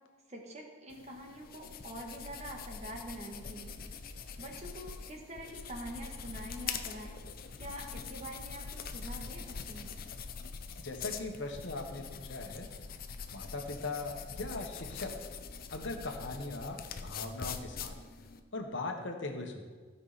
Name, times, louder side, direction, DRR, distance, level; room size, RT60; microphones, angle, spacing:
voice 1, 0.3-3.7 4.4-7.1 7.6-9.9, right 1 dB, 35° right, 1 dB, 1.5 m, -45 dB
sound 1, 0.9-18.4, left 6 dB, 45° left, 0.6 m, -44 dB
voice 2, 10.8-12.7 13.3-15.2 15.7-18.0 18.5-19.6, left 3 dB, 60° left, 3 dB, 1.3 m, -39 dB
16.0 x 5.6 x 4.2 m, 1.5 s
head